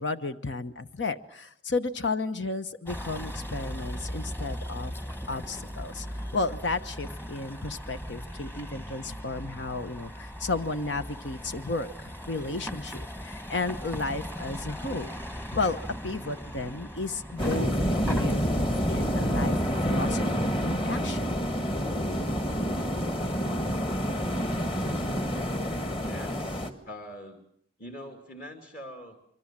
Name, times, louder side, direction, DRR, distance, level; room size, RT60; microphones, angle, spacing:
voice 1, 0.0-4.9 5.3-19.6 19.8-21.2, left 3 dB, 70° left, 10 dB, 1.1 m, -33 dB
Vehicle, 2.9-19.8, equal, 10° left, 1.3 m, -39 dB
sound 1, 17.4-26.7, equal, 30° left, 1.9 m, -28 dB
voice 2, 26.0-27.4 27.8-29.2, equal, 45° left, 5 dB, 2.6 m, -43 dB
25.0 x 24.5 x 7.5 m, 0.65 s
head